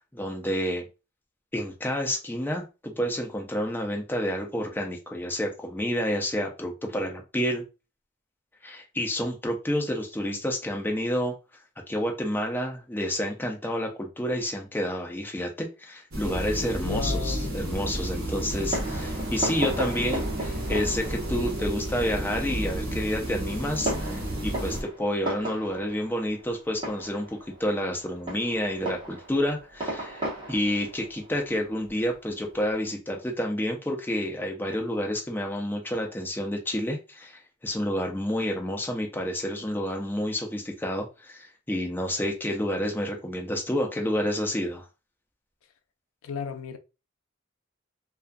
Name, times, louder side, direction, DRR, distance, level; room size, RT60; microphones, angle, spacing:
voice 1, 0.1-0.9 1.5-7.6 8.6-11.3 11.9-44.8, equal, 10° left, 0.5 m, -29 dB
sound 1, 16.1-24.8, right 1 dB, 50° right, 0.9 m, -31 dB
voice 2, 16.8-17.5 46.2-46.8, left 6 dB, 80° left, 0.4 m, -34 dB
Fireworks, 18.5-32.6, right 1 dB, 25° right, 1.0 m, -36 dB
2.3 x 2.3 x 2.5 m
head